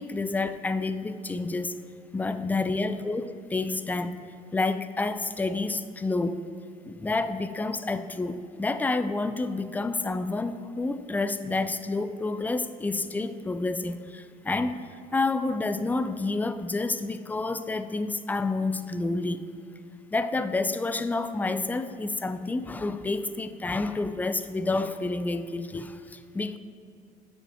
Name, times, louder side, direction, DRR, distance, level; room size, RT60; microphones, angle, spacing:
voice 1, 0.0-1.8 2.1-4.1 4.5-6.4 6.9-14.8 15.1-19.4 20.1-26.6, left 3 dB, 10° left, 11 dB, 0.3 m, -29 dB
8.8 x 5.3 x 4.9 m, 2.6 s
cardioid pair, 110°, 17 cm